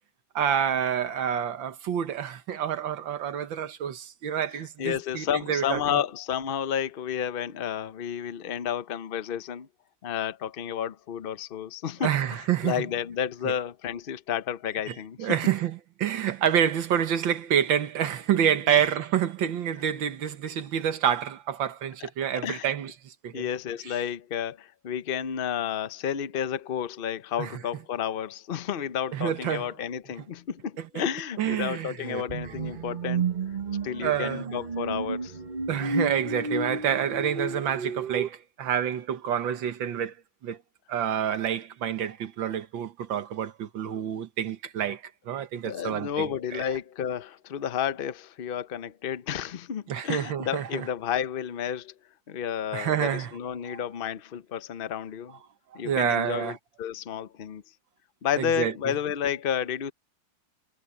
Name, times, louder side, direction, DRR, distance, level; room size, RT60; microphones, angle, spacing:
voice 1, 0.4-6.0 12.0-12.9 13.5-13.6 14.9-23.4 27.4-27.5 29.1-29.7 30.8-30.9 31.4-32.2 34.0-34.5 35.7-40.1 40.4-40.6 40.9-46.6 49.9-50.9 52.7-53.3 53.7-53.8 55.8-56.6 58.4-58.7, right 9 dB, 80° right, 2.0 m, -28 dB
voice 2, 4.5-9.7 10.0-15.3 18.7-18.8 22.0-22.1 22.4-22.7 23.3-33.3 33.8-35.4 45.6-51.9 52.3-55.4 55.7-57.6 58.2-59.9, left 9 dB, 90° left, 0.4 m, -31 dB
sound 1, 32.3-38.3, right 4 dB, 35° right, 0.9 m, -32 dB
omnidirectional pair, 2.1 m